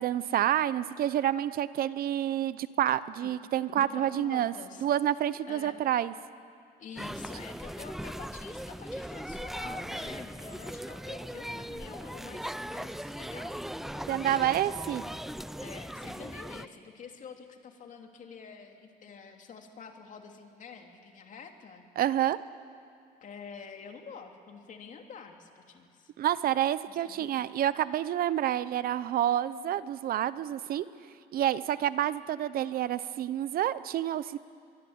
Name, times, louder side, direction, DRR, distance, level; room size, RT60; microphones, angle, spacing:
voice 1, 0.0-4.5 4.8-6.1 14.1-15.0 22.0-22.4 26.2-30.9 31.3-34.4, right 11 dB, 60° right, 16 dB, 0.8 m, -28 dB
voice 2, 3.8-4.9 5.5-5.8 6.8-14.6 15.6-21.9 23.2-26.1 27.0-27.5, left 6 dB, 50° left, 4 dB, 2.9 m, -47 dB
sound 1, 7.0-16.7, equal, ahead, 0.5 m, -39 dB
24.0 x 23.0 x 8.7 m, 2.3 s
cardioid pair, 110°, 17 cm